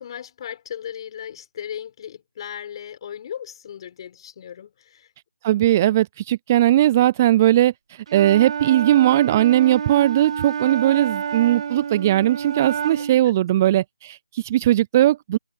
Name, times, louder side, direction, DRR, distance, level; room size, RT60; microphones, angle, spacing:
voice 1, 0.0-5.1 13.0-13.1, left 9 dB, 25° left, 4.2 m, -36 dB
voice 2, 5.4-15.4, right 13 dB, 15° right, 0.4 m, -19 dB
Wind instrument woodwind instrument, 8.1-13.2, right 7 dB, 30° right, 1.7 m, -29 dB
figure-of-eight pair, 160°, 6 cm